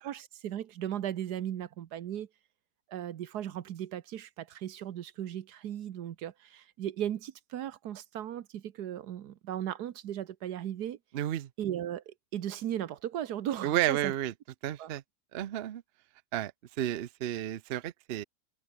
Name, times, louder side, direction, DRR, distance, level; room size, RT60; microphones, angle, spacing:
voice 1, 0.0-2.3 2.9-11.0 11.6-14.1 14.8-14.9, right 11 dB, 85° right, 1.5 m, -37 dB
voice 2, 11.1-11.5 13.6-14.3 14.6-15.0 15.3-15.8 16.3-16.5 16.8-18.2, right 12 dB, 55° right, 0.7 m, -31 dB
omnidirectional pair, 1.7 m